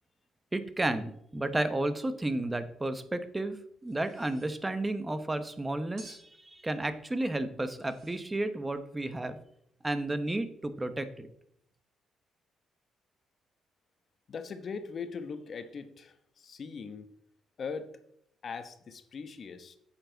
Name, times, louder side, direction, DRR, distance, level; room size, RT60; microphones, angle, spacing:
voice 1, 0.5-9.4 9.8-11.3, right 2 dB, 15° right, 11 dB, 0.9 m, -32 dB
sound 1, 3.8-4.6 6.0-6.4 7.7-8.4, right 2 dB, 70° right, 3.5 m, -54 dB
voice 2, 14.3-17.1 17.6-17.9 18.4-19.8, left 5 dB, 50° left, 9 dB, 1.0 m, -40 dB
8.8 x 7.2 x 4.0 m, 0.71 s
cardioid pair, 90°, 0 cm